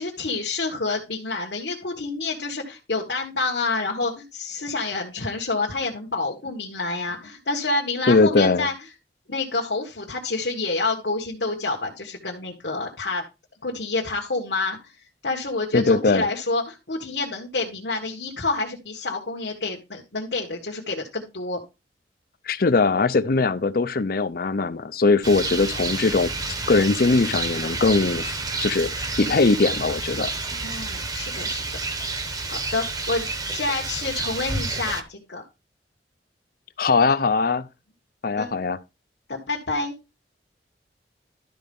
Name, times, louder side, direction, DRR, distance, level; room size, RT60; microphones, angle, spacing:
voice 1, 0.0-8.7 9.3-13.2 13.6-15.0 15.2-21.6 30.6-31.6 32.5-35.4 38.4-38.5 39.3-40.0, left 3 dB, 75° left, 1.5 m, -28 dB
voice 2, 8.1-8.7 15.7-16.3 22.5-26.3 26.7-28.3 28.6-28.9 29.2-30.3 36.8-37.7 38.2-38.8, left 3 dB, 55° left, 0.6 m, -20 dB
Rain, 25.2-35.0, right 3 dB, 20° right, 0.9 m, -29 dB
12.0 x 4.3 x 5.4 m
head